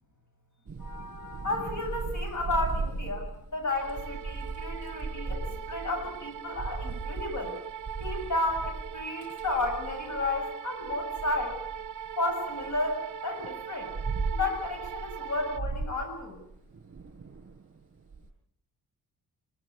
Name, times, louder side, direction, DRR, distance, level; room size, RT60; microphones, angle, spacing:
Thunder / Rain, 0.7-10.4 10.8-12.8 13.4-18.2, right 4 dB, 35° right, 7.5 m, -37 dB
voice 1, 0.8-7.5 8.0-11.6 12.2-13.9 14.3-16.4, left 2 dB, 50° left, 5 dB, 7.7 m, -32 dB
sound 1, 3.7-15.6, right 9 dB, 55° right, 1.1 m, -40 dB
23.0 x 18.5 x 9.6 m, 0.74 s
cardioid pair, 115°, 37 cm